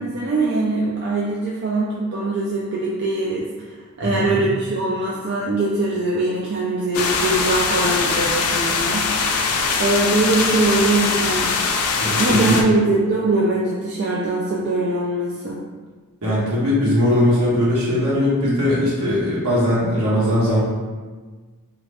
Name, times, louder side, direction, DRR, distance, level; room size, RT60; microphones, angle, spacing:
voice 1, 0.0-11.6 12.0-15.6, right 2 dB, 50° right, -5 dB, 0.3 m, -22 dB
voice 2, 4.0-4.4 12.0-12.5 16.2-20.6, left 1 dB, 75° right, -8 dB, 1.2 m, -19 dB
sound 1, 6.9-12.6, left 4 dB, 70° left, 0.4 m, -21 dB
2.6 x 2.5 x 3.2 m, 1.4 s
head